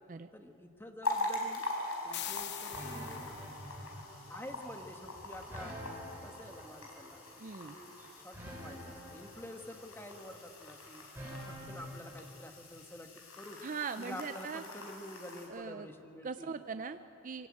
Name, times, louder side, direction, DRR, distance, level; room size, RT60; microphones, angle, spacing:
voice 1, 0.3-1.6 2.0-3.2 4.3-5.8 6.2-7.2 7.6-7.9 8.2-13.6 14.0-16.6, left 1 dB, 10° left, 5 dB, 1.4 m, -49 dB
sound 1, 1.0-15.5, left 2 dB, 80° left, 4.5 m, -43 dB
sound 2, 2.1-3.7, left 12 dB, 50° left, 0.9 m, -43 dB
sound 3, 2.7-12.3, equal, 10° right, 4.9 m, -47 dB
voice 2, 7.4-7.8 13.6-14.6 15.5-15.9 16.2-17.5, right 5 dB, 35° right, 9 dB, 0.5 m, -40 dB
23.0 x 17.5 x 8.7 m, 2.8 s
head